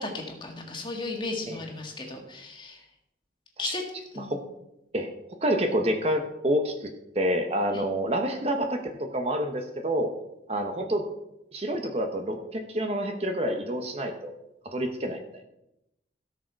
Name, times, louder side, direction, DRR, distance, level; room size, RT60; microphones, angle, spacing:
voice 1, 0.0-2.8 3.6-3.8 4.1-4.4 7.7-7.8, left 3 dB, 25° left, 1 dB, 1.9 m, -35 dB
voice 2, 5.4-6.9 7.1-10.1 10.5-11.1 11.5-14.4 14.7-15.2, equal, 35° right, 5 dB, 1.0 m, -28 dB
16.5 x 6.5 x 4.6 m, 0.87 s
head